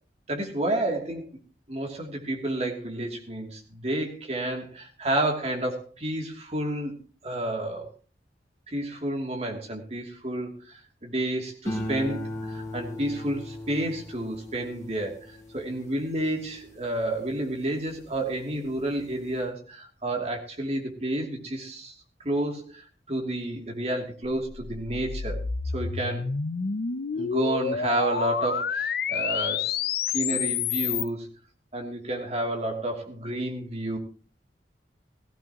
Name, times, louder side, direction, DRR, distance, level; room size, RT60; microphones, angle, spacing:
voice 1, 0.3-1.3 1.7-7.9 8.7-22.0 22.2-25.4 25.7-26.3 27.1-29.8 30.1-31.3 31.7-34.0, right 1 dB, 35° right, 1 dB, 2.8 m, -30 dB
sound 1, 11.6-18.2 18.6-19.1, left 1 dB, 15° left, 5.3 m, -38 dB
sound 2, 24.3-31.1, left 6 dB, 60° left, 0.6 m, -29 dB
17.0 x 15.0 x 3.0 m, 0.36 s
head